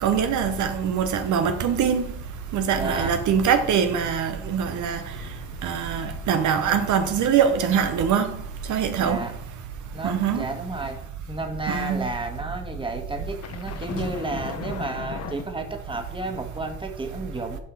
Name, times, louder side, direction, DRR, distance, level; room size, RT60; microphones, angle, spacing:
voice 1, 0.0-2.0 2.5-5.0 5.6-8.3 8.7-9.2 10.0-10.4 11.7-12.0, right 7 dB, 75° right, 0.8 m, -23 dB
voice 2, 2.7-3.1 9.0-9.3 9.9-11.0 11.3-17.6, right 2 dB, 15° right, 1.5 m, -32 dB
sound 1, 4.9-6.8 7.2-7.4 7.8-11.4 12.4-15.4, left 7 dB, 55° left, 0.9 m, -40 dB
7.2 x 4.8 x 6.2 m
cardioid pair, 90°, 30 cm